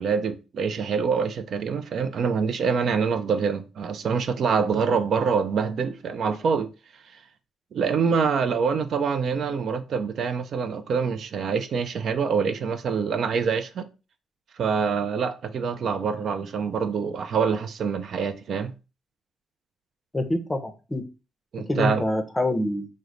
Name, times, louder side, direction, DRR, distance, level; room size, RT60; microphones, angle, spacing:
voice 1, 0.0-6.7 7.7-13.9 14.6-18.7 21.5-22.0, right 6 dB, 60° right, 0.4 m, -25 dB
voice 2, 20.1-21.1 21.7-23.0, left 1 dB, 15° left, 0.6 m, -26 dB
3.1 x 2.0 x 3.7 m
cardioid pair, 90°, 0 cm